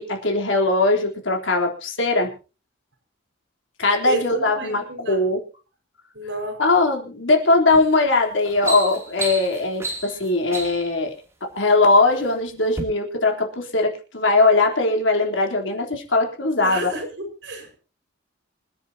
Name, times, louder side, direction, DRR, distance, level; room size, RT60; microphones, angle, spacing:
voice 1, 0.0-2.3 3.8-5.4 6.6-11.1 11.6-16.9, left 3 dB, 75° left, 1 dB, 3.7 m, -20 dB
voice 2, 4.1-5.3 6.1-6.6 16.6-17.7, right 1 dB, 65° right, 1 dB, 5.6 m, -30 dB
sound 1, 7.7-7.9 8.3-10.9 11.7-12.3 12.7-12.8, right 2 dB, 15° right, 2.9 m, -31 dB
27.0 x 10.5 x 2.9 m, 0.33 s
head